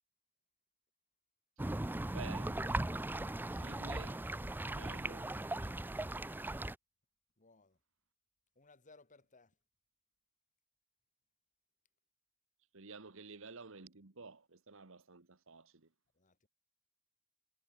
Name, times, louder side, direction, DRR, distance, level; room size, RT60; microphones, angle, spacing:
sound 1, 1.6-6.7, right 1 dB, 10° right, 0.5 m, -38 dB
voice 1, 2.1-2.6 3.5-4.2 4.7-5.3 12.7-15.9, right 4 dB, 65° right, 1.5 m, -51 dB
voice 2, 7.4-7.8 8.6-9.5 16.2-16.5, left 3 dB, 35° left, 2.4 m, -63 dB
head